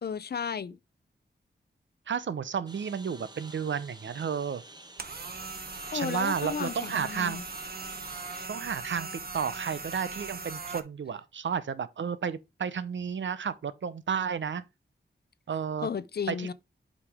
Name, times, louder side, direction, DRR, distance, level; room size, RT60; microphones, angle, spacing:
voice 1, 0.0-0.8 5.9-7.4 15.8-16.5, left 6 dB, 55° left, 0.5 m, -33 dB
voice 2, 2.1-4.6 5.9-7.4 8.5-9.1 9.3-14.6 15.5-15.9 16.3-16.5, right 7 dB, 80° right, 0.7 m, -32 dB
Engine, 2.7-8.5, right 2 dB, 20° right, 1.1 m, -50 dB
sound 1, 5.0-10.8, right 3 dB, 55° right, 0.9 m, -39 dB
8.2 x 5.2 x 3.5 m
wide cardioid pair, 85°, 19 cm